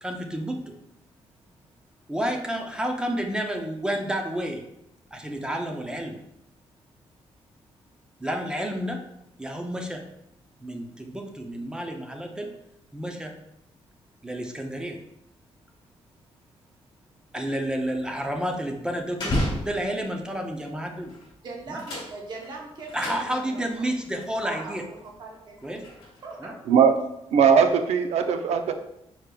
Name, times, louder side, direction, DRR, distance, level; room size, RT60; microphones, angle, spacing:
voice 1, 0.0-0.7 2.1-4.6 5.1-6.2 8.2-9.0 9.4-10.0 10.6-12.5 12.9-13.3 14.2-15.0 17.3-21.1 21.7-21.8 22.9-24.8 25.6-25.8 26.4-26.5, right 1 dB, 5° right, 3 dB, 0.5 m, -30 dB
sound 1, 17.6-20.2 21.0-21.3 21.6-23.7 24.2-24.3 24.9-26.4, left 1 dB, 45° left, 1.5 m, -33 dB
voice 2, 21.4-23.9 24.4-25.6 26.2-26.6, right 3 dB, 45° right, 0 dB, 0.8 m, -40 dB
voice 3, 27.3-28.7, right 6 dB, 85° right, 7 dB, 0.5 m, -19 dB
5.0 x 4.5 x 2.2 m, 0.81 s
wide cardioid pair, 175°, 11 cm